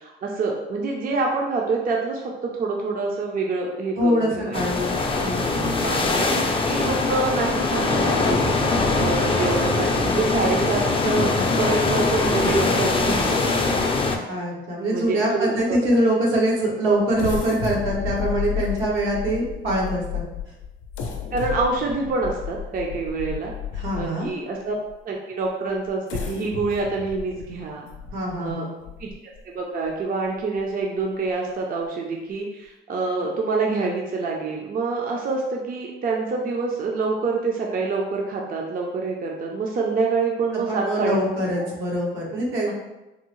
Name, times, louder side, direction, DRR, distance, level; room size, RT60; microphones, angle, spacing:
voice 1, 0.0-4.6 5.8-13.6 14.9-15.8 21.3-23.5 23.9-24.7 25.0-27.9 28.4-28.7 29.0-29.1 29.5-41.2 41.6-41.7, right 3 dB, 45° right, 0 dB, 0.5 m, -26 dB
voice 2, 4.0-6.1 14.3-20.2 23.8-24.3 28.1-28.7 40.7-42.7, right 1 dB, 85° right, -3 dB, 1.0 m, -24 dB
sound 1, 4.5-14.2, left 3 dB, 25° left, 0.4 m, -22 dB
sound 2, 17.1-24.3 24.9-25.0 25.9-29.4 29.9-30.0 30.4-30.6, left 7 dB, 90° left, 0.5 m, -32 dB
3.5 x 2.0 x 3.0 m, 1.0 s
cardioid pair, 90°, 20 cm